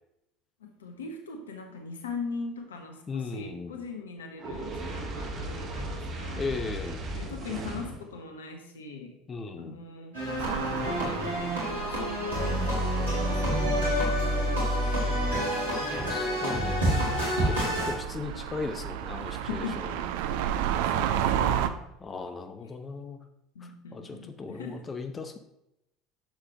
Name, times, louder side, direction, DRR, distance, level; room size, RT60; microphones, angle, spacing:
voice 1, 0.6-6.4 7.1-9.2 9.6-16.4 17.6-17.9 19.3-20.3 20.6-21.9 23.5-24.9, left 4 dB, 75° left, 5 dB, 1.1 m, -41 dB
voice 2, 3.1-3.8 6.4-7.1 9.3-9.8 16.1-17.0 17.4-20.0 20.3-20.4 22.0-23.2 23.6-25.4, left 4 dB, 25° left, 7 dB, 0.8 m, -37 dB
Fire, 4.4-8.1, right 2 dB, 45° right, 1.7 m, -36 dB
sound 1, 10.1-17.9, equal, 80° right, 2.9 m, -28 dB
sound 2, 10.4-21.7, right 10 dB, 60° right, 0.5 m, -33 dB
10.5 x 6.9 x 3.0 m, 0.85 s
figure-of-eight pair, 65°, 0 cm